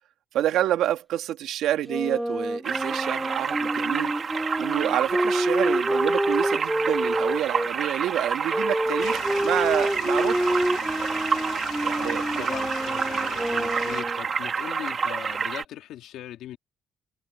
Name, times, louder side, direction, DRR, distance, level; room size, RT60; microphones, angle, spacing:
voice 1, 0.3-4.1 4.6-10.6 11.8-12.5, right 12 dB, 75° right, 2.0 m, -28 dB
Wind instrument woodwind instrument, 1.8-7.7 8.5-14.3, right 1 dB, 5° right, 3.0 m, -27 dB
sound 1, 2.6-15.6, right 6 dB, 35° right, 1.4 m, -29 dB
sound 2, 9.0-14.0, left 10 dB, 65° left, 2.3 m, -39 dB
voice 2, 11.9-16.6, left 12 dB, 80° left, 2.7 m, -40 dB
cardioid pair, 145°, 0 cm